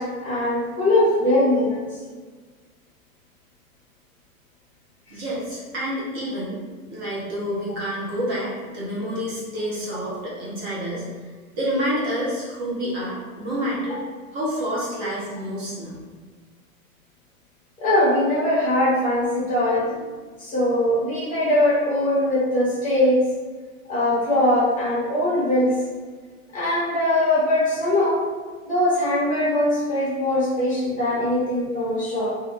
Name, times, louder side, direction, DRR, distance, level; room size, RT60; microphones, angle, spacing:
voice 1, 0.0-1.8 13.9-14.0 17.8-20.0 20.4-23.2 23.9-25.7 26.5-28.2 28.7-32.3, left 1 dB, 20° left, -8 dB, 0.9 m, -21 dB
voice 2, 5.1-6.6 6.9-11.0 11.6-14.0 14.3-15.9, equal, 40° right, -7 dB, 1.0 m, -28 dB
2.8 x 2.4 x 2.5 m, 1.4 s
hypercardioid pair, 125°, 42 cm